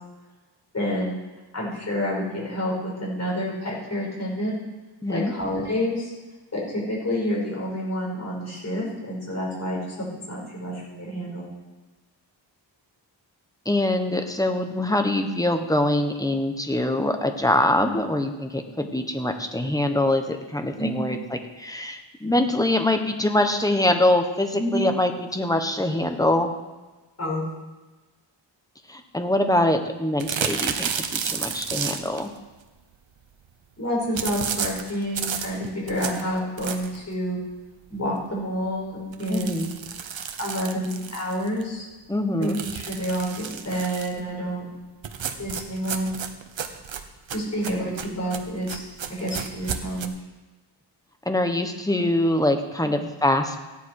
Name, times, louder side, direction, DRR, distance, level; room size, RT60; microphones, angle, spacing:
voice 1, 0.7-1.2 1.5-4.6 5.1-6.1 6.5-11.5 17.8-17.9 20.8-21.0 24.6-24.8 27.2-27.4 30.7-30.8 33.8-37.4 37.9-39.7 40.4-41.9 42.4-44.6 45.4-46.2 47.3-47.9 48.2-48.8 49.1-50.1, equal, 35° left, -4 dB, 5.8 m, -28 dB
voice 2, 5.0-5.3 13.6-21.2 21.6-26.5 28.9-32.3 39.3-39.7 42.1-42.6 51.2-53.6, left 1 dB, 10° left, 5 dB, 1.3 m, -24 dB
sound 1, 30.2-32.3 34.2-37.1 37.5-37.6 38.0-38.1 38.3-38.4 39.1-41.6 42.4-44.2 45.0-50.1, right 7 dB, 80° right, 1.1 m, -32 dB
15.0 x 10.5 x 4.9 m, 1.2 s
wide cardioid pair, 95°, 45 cm